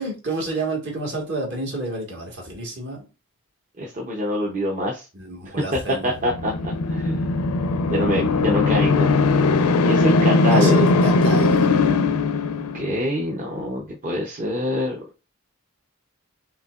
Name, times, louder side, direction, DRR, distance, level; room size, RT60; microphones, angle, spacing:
voice 1, 0.0-3.1 5.1-6.1 10.5-11.7, right 2 dB, 55° right, 1.6 m, -29 dB
voice 2, 3.8-5.1 6.0-7.3 7.9-9.1 9.8-10.9 12.7-15.0, equal, 35° right, 0.7 m, -25 dB
sound 1, 6.1-13.1, left 3 dB, 85° left, 0.5 m, -19 dB
5.6 x 2.8 x 2.4 m
head